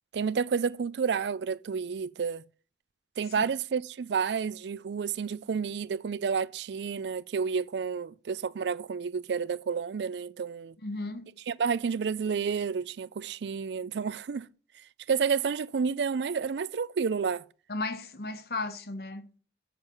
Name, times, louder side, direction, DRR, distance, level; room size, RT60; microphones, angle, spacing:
voice 1, 0.1-2.4 3.2-10.7 11.5-14.5 15.1-17.4, right 6 dB, 75° right, 0.4 m, -30 dB
voice 2, 10.8-11.3 17.7-19.4, left 3 dB, 60° left, 1.0 m, -35 dB
7.6 x 5.8 x 7.0 m
head